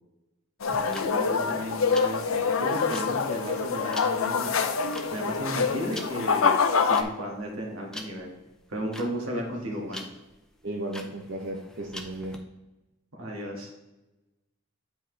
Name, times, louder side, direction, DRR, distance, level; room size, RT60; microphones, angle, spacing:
sound 1, 0.6-7.0, left 5 dB, 75° left, 0.5 m, -26 dB
sound 2, 0.6-12.4, left 1 dB, 5° left, 0.5 m, -44 dB
voice 1, 0.7-4.6 5.1-8.3 8.7-10.0 13.1-13.7, equal, 85° right, -1 dB, 1.7 m, -34 dB
voice 2, 10.6-12.4, right 1 dB, 55° right, -1 dB, 0.8 m, -35 dB
9.0 x 4.2 x 3.3 m, 1.1 s
head